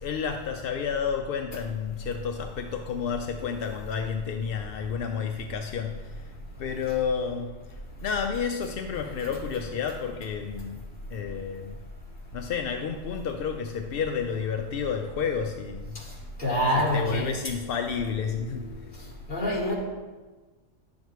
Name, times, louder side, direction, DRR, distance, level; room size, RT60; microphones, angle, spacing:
voice 1, 0.0-11.8 12.3-15.9 16.5-19.1, left 6 dB, 65° left, 5 dB, 0.5 m, -31 dB
voice 2, 16.4-17.3 19.3-19.7, equal, 35° left, -5 dB, 2.2 m, -25 dB
10.5 x 7.2 x 3.1 m, 1.3 s
omnidirectional pair, 1.4 m